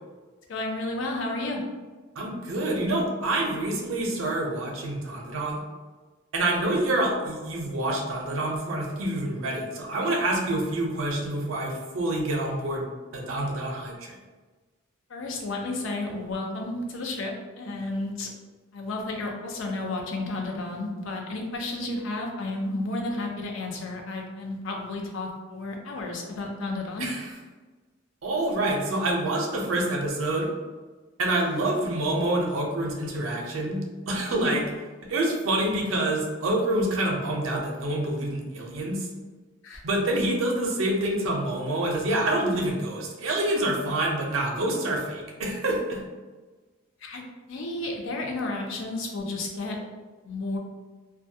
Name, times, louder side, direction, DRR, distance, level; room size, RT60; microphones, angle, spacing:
voice 1, 0.5-1.6 15.1-18.3 18.7-27.1 34.3-34.5 39.6-39.8 47.0-49.8 50.2-50.6, left 2 dB, 75° left, 1 dB, 0.5 m, -32 dB
voice 2, 2.2-5.6 6.3-12.9 13.1-14.2 27.0-27.3 28.2-30.5 31.2-34.6 35.0-39.1 39.8-46.0, right 1 dB, 85° right, -1 dB, 0.5 m, -27 dB
2.2 x 2.2 x 2.7 m, 1.3 s
head